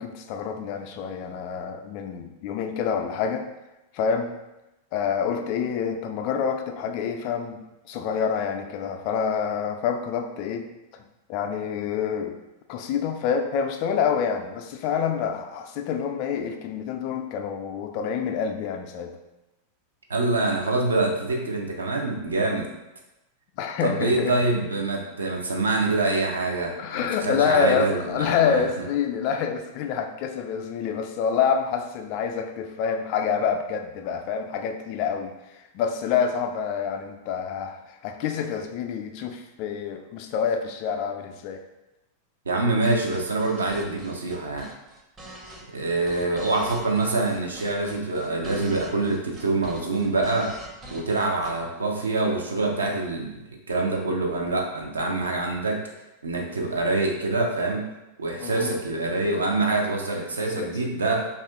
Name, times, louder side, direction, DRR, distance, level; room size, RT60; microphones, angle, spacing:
voice 1, 0.0-3.4 3.9-4.3 4.9-10.7 10.9-11.0 11.3-12.4 12.7-19.2 23.6-24.5 26.8-41.6 58.4-58.8 60.6-60.7, left 7 dB, 45° left, 5 dB, 0.3 m, -27 dB
voice 2, 20.1-22.7 23.8-28.8 42.5-44.7 45.7-50.5 50.9-55.8 56.2-57.8 58.2-61.3, right 2 dB, 75° right, 0 dB, 0.5 m, -25 dB
sound 1, 42.8-51.5, right 1 dB, 20° right, 0.6 m, -44 dB
2.7 x 2.4 x 3.5 m, 0.96 s
figure-of-eight pair, 90°, 0 cm